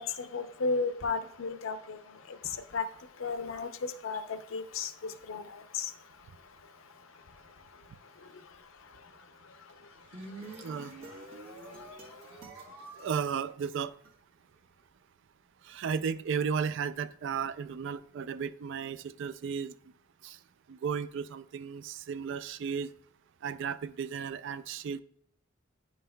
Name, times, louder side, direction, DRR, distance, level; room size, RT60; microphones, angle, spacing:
voice 1, 0.0-2.0 2.7-2.8 3.2-3.7 4.0-4.2 4.5-4.9 5.3-5.4 5.7-5.9, left 4 dB, 65° left, 0.6 m, -33 dB
sound 1, 9.8-14.1, right 2 dB, 75° right, 1.3 m, -48 dB
voice 2, 10.6-10.9 13.0-13.9 15.7-19.8 20.2-20.4 20.7-22.9 23.4-25.0, right 6 dB, 55° right, 0.3 m, -34 dB
10.0 x 5.5 x 2.2 m
head